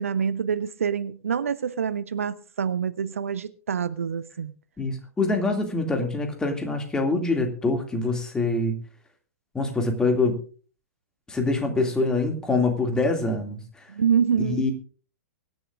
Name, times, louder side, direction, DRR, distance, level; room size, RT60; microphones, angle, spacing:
voice 1, 0.0-4.5 13.9-14.7, right 7 dB, 65° right, 0.7 m, -26 dB
voice 2, 4.8-8.8 9.5-10.4 11.3-13.6 14.4-14.7, left 3 dB, 10° left, 2.3 m, -25 dB
24.0 x 10.5 x 2.5 m
figure-of-eight pair, 110°, 8 cm